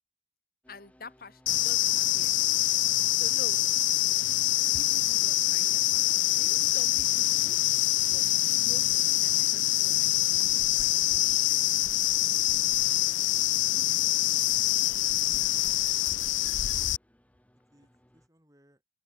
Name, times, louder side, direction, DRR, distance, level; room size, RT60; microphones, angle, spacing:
sound 1, 0.6-18.3, equal, 5° left, 3.6 m, -65 dB
voice 1, 0.7-2.3 3.1-3.6 4.7-7.6 8.0-8.3 8.6-10.1 10.3-11.0, left 2 dB, 50° left, 1.8 m, -48 dB
sound 2, 1.5-17.0, left 16 dB, 85° left, 0.5 m, -25 dB
sound 3, 7.2-12.8, right 3 dB, 65° right, 5.3 m, -66 dB
voice 2, 14.0-14.5 14.8-15.5 16.1-16.6 17.7-18.8, equal, 20° right, 6.0 m, -64 dB
open air
head